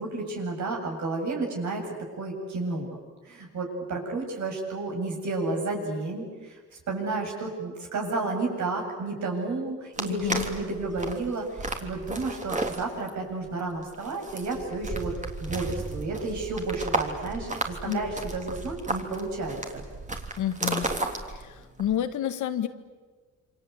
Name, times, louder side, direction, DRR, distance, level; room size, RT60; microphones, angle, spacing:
voice 1, 0.0-1.9 2.2-2.9 3.2-6.3 6.9-15.1 15.4-19.8, right 3 dB, 65° right, 1 dB, 8.0 m, -31 dB
sound 1, 9.9-22.1, right 2 dB, 25° right, 3.4 m, -34 dB
voice 2, 10.1-10.5 17.9-18.0 20.4-20.9 21.3-22.7, left 10 dB, 75° left, 9 dB, 1.9 m, -29 dB
28.0 x 25.5 x 8.3 m, 1.4 s
cardioid pair, 90°, 30 cm